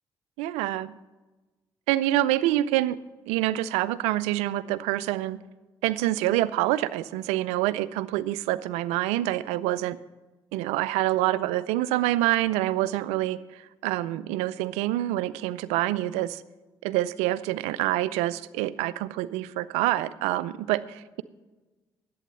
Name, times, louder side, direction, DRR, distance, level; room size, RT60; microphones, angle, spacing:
voice 1, 0.4-0.9 1.9-3.0 3.3-5.4 5.8-10.0 10.5-16.4 16.8-21.2, right 15 dB, 85° right, 17 dB, 0.4 m, -26 dB
11.0 x 8.6 x 6.8 m, 1.1 s
hypercardioid pair, 50°, 11 cm